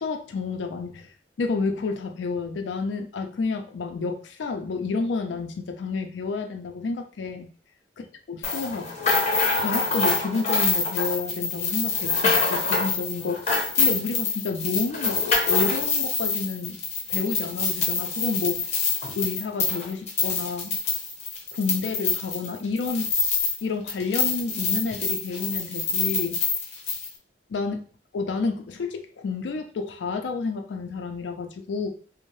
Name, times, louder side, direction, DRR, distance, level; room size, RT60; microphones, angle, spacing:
voice 1, 0.0-1.1 1.4-7.5 8.3-8.9 9.6-13.5 13.8-16.8 17.1-18.7 19.2-20.8 21.5-23.1 23.6-26.4 27.5-27.8 28.1-31.9, left 4 dB, 80° left, 5 dB, 0.4 m, -30 dB
sound 1, 8.4-23.6 23.9-27.1, left 4 dB, 40° left, 0.6 m, -26 dB
3.1 x 2.0 x 2.6 m, 0.42 s
head